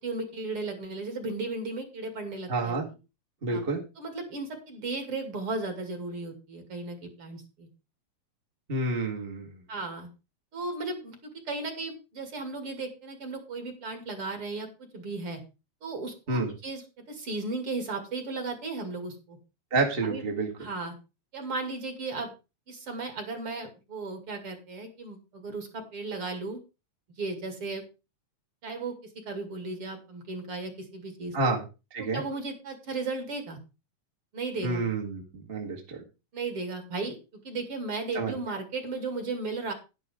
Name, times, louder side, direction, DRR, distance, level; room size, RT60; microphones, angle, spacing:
voice 1, 0.0-2.8 3.5-3.6 4.0-7.7 9.7-10.1 10.5-14.7 14.9-15.4 15.8-16.8 17.1-19.4 20.0-20.2 20.6-21.0 21.3-22.3 22.7-26.6 27.2-27.8 28.6-28.9 29.2-31.3 32.0-33.6 34.3-34.8 36.3-37.2 37.4-39.7, right 3 dB, 50° right, 5 dB, 3.2 m, -35 dB
voice 2, 2.5-2.9 3.4-3.8 8.7-9.6 16.3-16.5 19.7-20.5 31.3-31.6 31.9-32.2 34.6-36.0 38.1-38.3, right 3 dB, 25° right, 0 dB, 1.6 m, -29 dB
10.5 x 10.5 x 3.6 m, 0.29 s
omnidirectional pair, 3.4 m